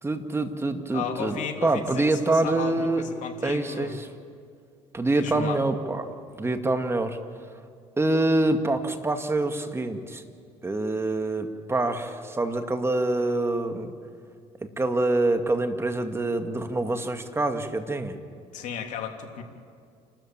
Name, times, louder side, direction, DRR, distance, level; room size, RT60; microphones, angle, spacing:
voice 1, 0.0-3.0 3.4-4.1 4.9-7.2 8.0-10.2 10.6-13.9 14.8-18.2, right 2 dB, 20° right, 6 dB, 2.2 m, -26 dB
voice 2, 0.9-4.0 5.2-5.6 18.5-19.4, left 7 dB, 60° left, 3 dB, 3.1 m, -34 dB
29.0 x 13.5 x 8.9 m, 2.2 s
supercardioid pair, 75°, 14 cm